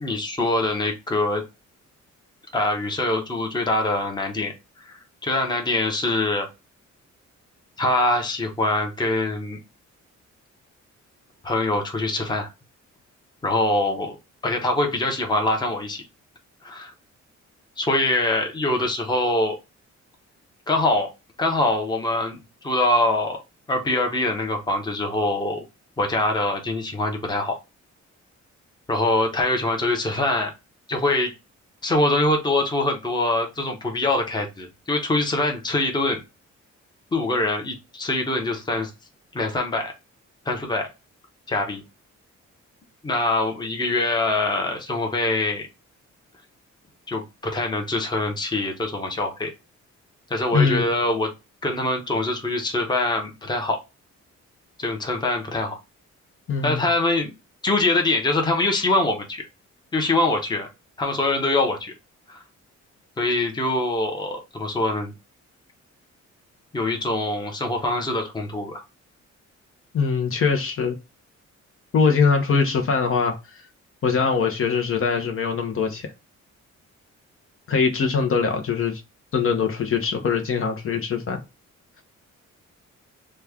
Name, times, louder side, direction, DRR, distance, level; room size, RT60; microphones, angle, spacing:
voice 1, 0.0-1.5 2.5-6.5 7.8-9.6 11.4-12.5 13.4-14.2 14.4-16.0 16.6-16.9 17.8-19.6 20.7-21.1 21.4-23.4 23.7-25.6 26.0-27.6 28.9-30.5 30.9-31.3 31.8-36.2 37.1-38.9 39.3-39.9 40.5-40.9 41.5-41.8 43.0-45.7 47.1-49.5 50.3-51.3 51.6-53.8 54.8-55.8 56.6-57.3 57.6-59.4 59.9-60.7 61.0-61.9 62.3-62.4 63.2-65.1 66.7-68.8, left 2 dB, 15° left, 0.7 m, -24 dB
voice 2, 50.5-50.9 56.5-56.8 69.9-70.9 71.9-73.6 74.0-76.1 77.7-79.0 79.3-81.4, left 5 dB, 50° left, 0.7 m, -22 dB
3.1 x 2.3 x 3.4 m
wide cardioid pair, 160°, 29 cm